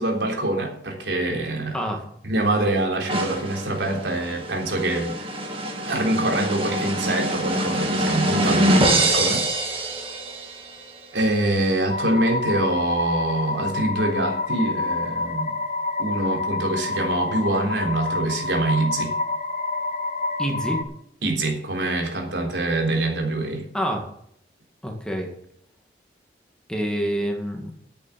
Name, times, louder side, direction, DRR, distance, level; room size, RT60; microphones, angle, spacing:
voice 1, 0.0-1.8 2.2-5.1 5.8-9.5 9.8-9.9 11.1-15.5 16.0-19.1 21.2-23.6, right 2 dB, 80° right, 1 dB, 3.6 m, -25 dB
sound 1, 3.1-10.7, right 1 dB, 30° right, 2.3 m, -24 dB
sound 2, 11.9-20.8, left 3 dB, 40° left, 1.5 m, -28 dB
voice 2, 20.4-20.8 23.7-24.1 24.8-25.3 26.7-27.7, equal, 5° left, 2 dB, 2.1 m, -27 dB
11.0 x 8.7 x 7.5 m, 0.71 s
head